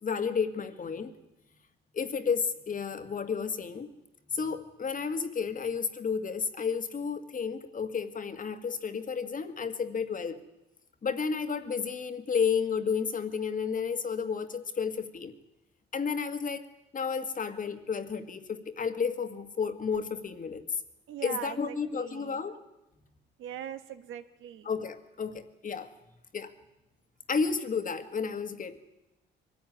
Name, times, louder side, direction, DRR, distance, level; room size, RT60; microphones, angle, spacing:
voice 1, 0.0-1.1 1.9-3.9 4.3-10.4 11.0-15.3 15.9-16.7 16.9-20.6 21.2-22.6 24.6-25.9 26.3-26.5 27.3-28.8, left 6 dB, 40° left, 9 dB, 1.8 m, -32 dB
voice 2, 21.1-22.4 23.4-24.7, right 10 dB, 90° right, 10 dB, 1.4 m, -41 dB
23.0 x 13.5 x 9.7 m, 0.96 s
cardioid pair, 90°, 20 cm